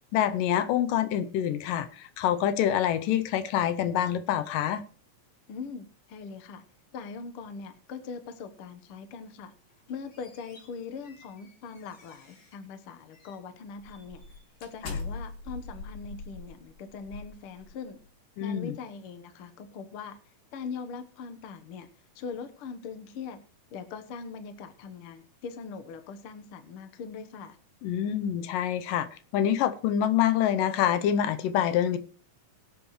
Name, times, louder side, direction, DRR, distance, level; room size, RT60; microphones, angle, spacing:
voice 1, 0.1-4.8 14.8-15.0 18.4-18.8 27.8-29.1 29.3-32.0, left 10 dB, 85° left, 11 dB, 2.4 m, -26 dB
voice 2, 5.5-6.6 6.9-9.5 9.9-14.2 14.6-18.0 18.4-20.2 20.5-21.9 22.1-23.4 23.7-27.6, left 5 dB, 60° left, 8 dB, 1.5 m, -41 dB
sound 1, 9.7-12.6 13.1-13.4 13.8-18.0, left 3 dB, 35° left, 2.4 m, -43 dB
21.5 x 8.3 x 3.1 m, 0.39 s
omnidirectional pair, 3.8 m